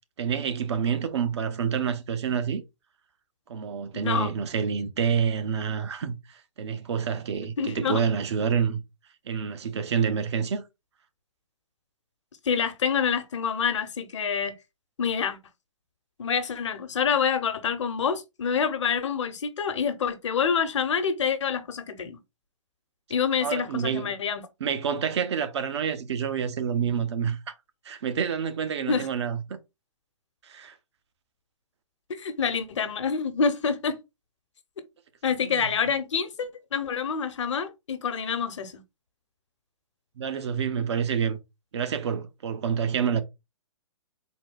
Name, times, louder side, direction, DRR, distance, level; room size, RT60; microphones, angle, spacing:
voice 1, 0.2-2.6 3.5-8.8 9.3-10.6 23.4-24.2 24.6-27.6 27.8-29.6 30.4-30.8 35.4-35.6 40.2-41.4 41.7-43.2, right 7 dB, 60° right, 0.8 m, -28 dB
voice 2, 7.6-8.0 12.4-14.6 15.0-15.4 16.2-22.2 23.1-24.4 28.9-29.1 32.1-34.0 35.2-38.8, left 6 dB, 65° left, 0.9 m, -27 dB
4.0 x 2.3 x 3.7 m
hypercardioid pair, 135°, 17 cm